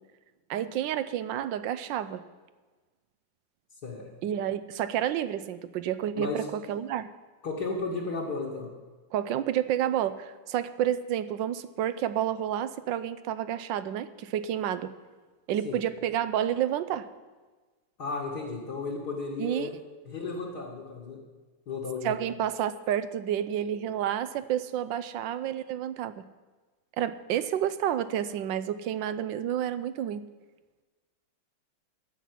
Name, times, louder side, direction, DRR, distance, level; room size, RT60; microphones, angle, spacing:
voice 1, 0.5-2.2 4.2-7.1 9.1-14.9 15.5-17.1 19.4-19.7 22.0-26.2 27.0-30.2, right 10 dB, 75° right, 14 dB, 1.3 m, -30 dB
voice 2, 6.1-6.5 7.4-8.7 15.6-15.8 18.0-19.8 20.1-21.2 21.7-22.2, left 3 dB, 60° left, -5 dB, 2.3 m, -34 dB
14.5 x 5.8 x 9.4 m, 1.3 s
omnidirectional pair, 2.1 m